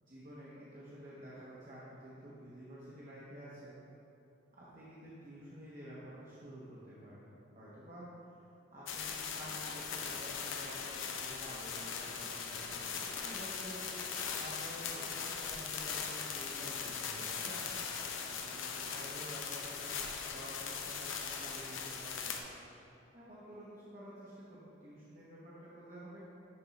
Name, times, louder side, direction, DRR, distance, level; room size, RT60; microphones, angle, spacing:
voice 1, 0.0-3.7 4.6-7.3 7.5-8.1 8.7-17.6 18.2-22.5 23.1-26.2, equal, 40° right, -9 dB, 1.0 m, -50 dB
sound 1, 8.9-22.4, left 6 dB, 80° left, 0.6 m, -40 dB
9.8 x 3.6 x 4.1 m, 2.9 s
head